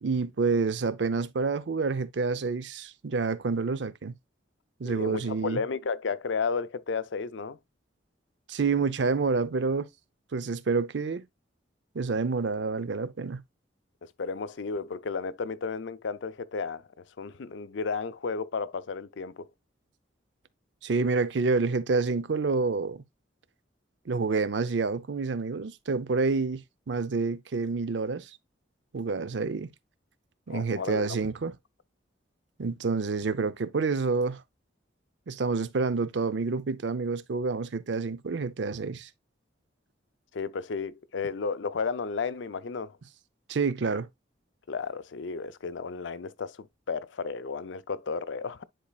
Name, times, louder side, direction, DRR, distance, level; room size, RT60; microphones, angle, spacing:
voice 1, 0.0-4.1 4.8-5.6 8.5-9.9 10.3-11.2 11.9-13.4 20.8-23.0 24.1-28.3 28.9-29.7 30.5-31.6 32.6-34.4 35.3-39.1 43.5-44.1, right 4 dB, 70° right, 0.5 m, -28 dB
voice 2, 4.8-7.6 14.2-16.9 17.2-19.5 30.5-31.2 40.3-43.0 44.7-48.6, left 5 dB, 75° left, 0.5 m, -33 dB
10.0 x 4.2 x 2.3 m
head